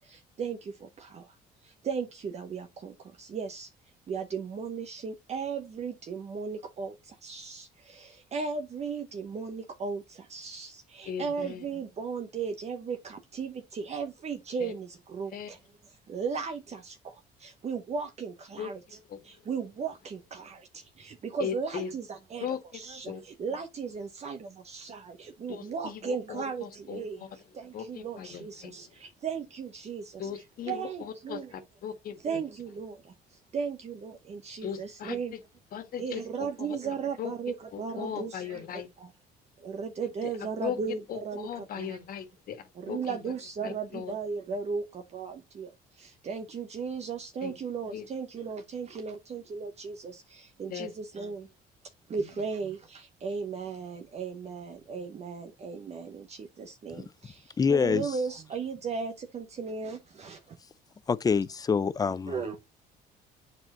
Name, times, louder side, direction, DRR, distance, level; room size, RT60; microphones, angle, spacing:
voice 1, 0.0-1.4 1.6-3.7 4.1-15.6 16.1-19.0 19.2-31.5 32.2-35.3 36.0-39.1 39.6-42.0 42.7-51.5 52.1-60.6 62.3-62.6, right 5 dB, 40° right, 1.0 m, -36 dB
voice 2, 11.0-11.6 14.6-14.7 15.3-15.5 18.6-18.7 19.1-19.2 21.4-21.9 22.4-22.8 23.0-23.2 25.5-27.3 27.7-28.7 30.2-32.2 34.6-35.2 35.7-36.8 37.2-37.3 37.7-38.9 40.2-40.3 40.6-40.8 41.1-43.3 43.6-44.1 47.4-47.5 47.9-48.0 50.7-50.9 52.2-52.3 57.9-58.1, left 8 dB, 60° left, 1.7 m, -38 dB
voice 3, 57.6-58.0 61.1-62.3, left 5 dB, 20° left, 0.4 m, -25 dB
8.4 x 4.5 x 3.0 m
cardioid pair, 110°, 17 cm